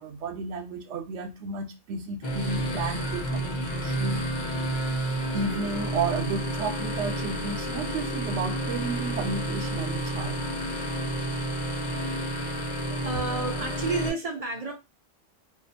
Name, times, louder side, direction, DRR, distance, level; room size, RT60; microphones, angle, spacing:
voice 1, 0.0-4.3 5.3-10.5, right 4 dB, 80° right, 0.9 m, -32 dB
sound 1, 2.2-14.1, right 1 dB, 45° left, 0.7 m, -30 dB
voice 2, 12.9-14.7, right 3 dB, 55° right, 0.4 m, -31 dB
2.4 x 2.3 x 2.6 m
omnidirectional pair, 1.2 m